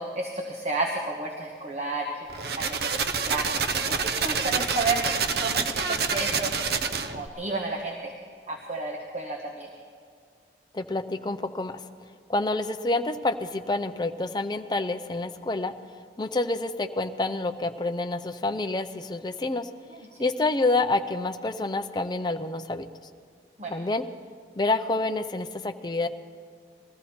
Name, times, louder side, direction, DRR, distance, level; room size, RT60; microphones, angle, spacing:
voice 1, 0.0-2.3 2.6-5.1 5.4-6.5 7.1-8.1 8.5-9.7 23.6-23.7, right 2 dB, 40° right, 0 dB, 1.1 m, -31 dB
sound 1, 2.3-7.3, right 5 dB, 60° right, 0.7 m, -27 dB
voice 2, 10.7-11.8 12.3-15.7 16.2-19.7 20.2-22.9 23.7-24.0 24.6-26.1, left 2 dB, 25° left, 8 dB, 0.5 m, -28 dB
21.0 x 14.0 x 4.3 m, 2.2 s
head